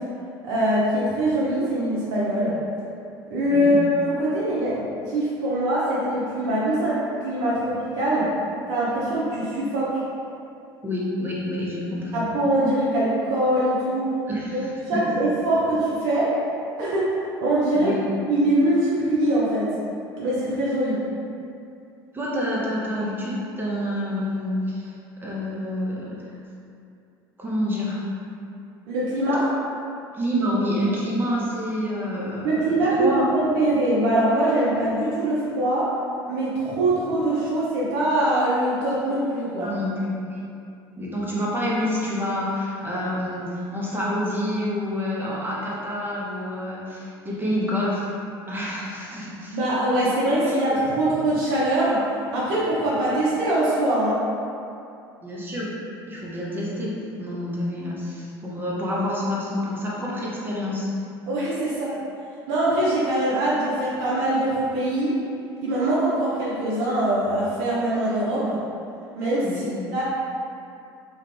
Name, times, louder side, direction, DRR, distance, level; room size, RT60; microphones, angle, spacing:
voice 1, 0.4-2.6 3.3-8.3 8.7-9.9 12.1-14.1 14.5-16.3 16.8-17.9 18.2-19.7 20.2-21.0 28.9-29.5 32.4-35.9 36.3-39.7 49.5-52.0 52.3-54.2 61.3-61.9 62.5-65.1 65.6-68.6 69.2-69.4 69.9-70.0, right 1 dB, 55° right, -8 dB, 0.6 m, -23 dB
voice 2, 10.8-12.2 14.3-15.0 17.7-18.1 22.1-24.9 25.2-26.3 27.4-28.0 30.1-33.3 39.6-40.4 41.0-48.1 48.5-49.6 50.3-50.8 55.2-55.7 56.1-56.9 57.2-60.9 69.4-69.7, left 1 dB, 15° right, -6 dB, 0.7 m, -28 dB
2.4 x 2.2 x 3.2 m, 2.5 s
figure-of-eight pair, 65°, 13 cm